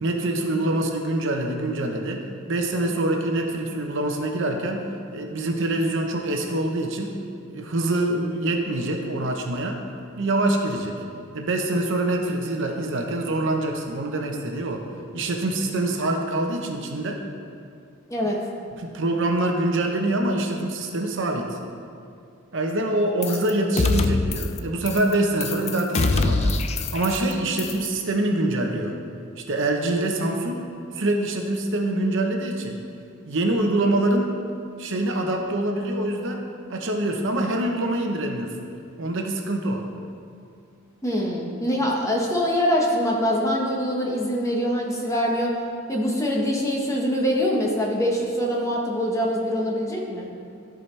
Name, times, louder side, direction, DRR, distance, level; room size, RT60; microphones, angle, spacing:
voice 1, 0.0-7.2 7.5-9.8 10.2-11.0 11.3-14.9 15.1-17.2 18.8-21.6 22.5-29.0 29.4-30.7 30.9-32.8 33.3-34.4 34.8-36.4 36.7-38.6 39.0-39.9, right 1 dB, 60° right, 2 dB, 0.9 m, -25 dB
sound 1, 23.2-23.5 23.8-24.6 24.9-25.1 25.4-27.3 27.6-27.9, left 3 dB, 30° left, 0.4 m, -24 dB
voice 2, 41.0-45.5 45.9-50.3, equal, 15° left, -2 dB, 1.1 m, -24 dB
13.5 x 5.1 x 3.3 m, 2.5 s
head